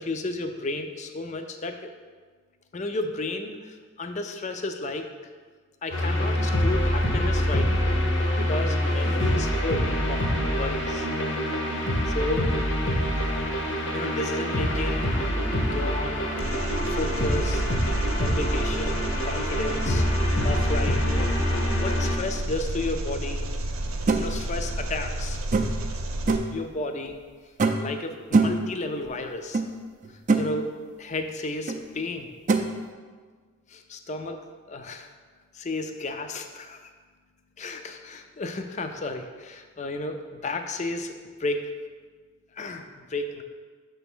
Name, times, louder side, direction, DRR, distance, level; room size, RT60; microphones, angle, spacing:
voice 1, 0.0-1.9 2.7-5.1 5.8-8.0 8.3-11.1 12.1-12.5 13.9-15.1 15.6-16.3 16.8-17.7 18.2-20.1 20.4-23.5 24.1-25.4 26.5-27.2 27.8-29.6 30.4-30.7 31.0-32.3 33.7-34.4 34.7-35.1 35.5-36.8 37.6-41.1 41.4-41.7 42.5-43.4, left 2 dB, 35° left, 6 dB, 0.4 m, -33 dB
sound 1, 5.9-22.2, equal, 60° left, 0.9 m, -25 dB
Engine, 16.4-26.4, right 1 dB, 85° right, 0.7 m, -31 dB
sound 2, 24.1-24.2 25.5-25.9 26.3-26.6 27.6-27.9 28.3-28.7 29.5-29.7 30.0-30.5 31.7-31.8 32.5-32.7, right 3 dB, 35° right, 0.4 m, -22 dB
6.3 x 3.4 x 6.0 m, 1.5 s
head